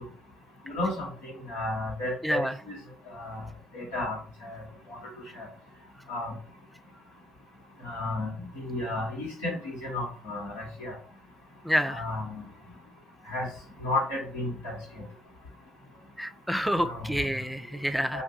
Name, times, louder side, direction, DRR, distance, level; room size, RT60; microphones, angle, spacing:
voice 1, 0.7-2.7 3.1-3.4 3.7-4.6 4.9-5.0 5.3-5.5 6.1-6.3 7.8-10.9 11.9-12.4 13.3-13.5 13.8-14.7 16.8-17.1 18.1-18.2, left 2 dB, 85° left, -4 dB, 1.2 m, -33 dB
voice 2, 11.7-12.0 16.2-18.2, equal, ahead, 8 dB, 0.3 m, -28 dB
2.5 x 2.3 x 3.6 m, 0.43 s
hypercardioid pair, 50°, 0 cm